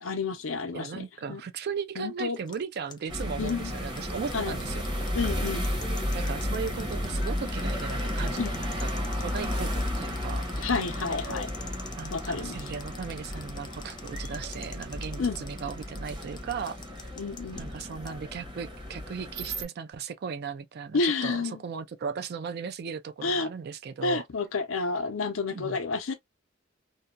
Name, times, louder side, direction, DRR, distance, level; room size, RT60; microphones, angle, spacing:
voice 1, 0.0-1.4 2.0-2.4 3.4-3.7 4.3-4.6 5.1-5.7 8.4-8.5 10.6-11.5 12.1-12.7 15.2-15.4 17.2-17.6 20.9-21.6 23.2-23.5 24.0-26.1, left 4 dB, 90° left, 0.6 m, -30 dB
voice 2, 0.7-4.8 6.1-8.9 9.1-10.5 12.0-17.1 17.6-24.2 25.5-25.8, right 6 dB, 55° right, 0.4 m, -37 dB
sound 1, 2.3-18.1, left 6 dB, 20° left, 0.4 m, -46 dB
sound 2, 3.1-19.6, equal, 25° right, 0.9 m, -33 dB
2.6 x 2.2 x 2.4 m
head